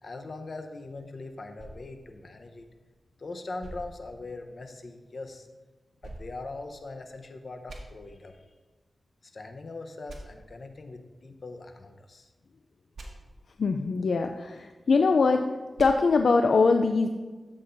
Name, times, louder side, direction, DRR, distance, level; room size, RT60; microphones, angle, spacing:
voice 1, 0.0-2.7 3.2-5.5 6.0-8.5 9.2-12.3, left 3 dB, 60° left, 5 dB, 0.9 m, -41 dB
sound 1, 1.6-3.0 3.6-4.8 6.0-7.2 7.7-7.8 10.1-10.2 12.9-13.1 15.8-15.9, right 2 dB, 80° right, 1.5 m, -47 dB
voice 2, 13.6-15.5 15.8-17.1, left 4 dB, 80° left, 6 dB, 0.4 m, -22 dB
12.5 x 7.6 x 2.6 m, 1.3 s
cardioid pair, 60°, 0 cm